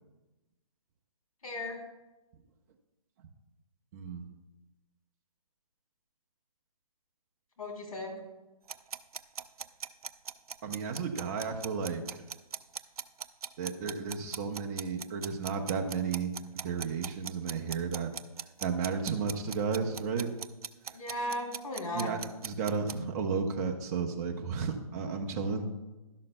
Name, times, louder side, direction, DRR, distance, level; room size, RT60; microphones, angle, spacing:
voice 1, 1.4-1.8 7.6-8.1 20.9-22.1, left 1 dB, 70° left, 0 dB, 3.3 m, -36 dB
voice 2, 3.9-4.3 10.6-12.2 13.6-16.3 16.6-18.1 18.6-20.3 21.9-22.2 22.4-25.7, right 5 dB, 25° right, 3 dB, 0.9 m, -33 dB
sound 1, 8.7-23.0, right 7 dB, 75° right, 0.5 m, -40 dB
12.0 x 11.5 x 2.2 m, 1.1 s
hypercardioid pair, 150°, 19 cm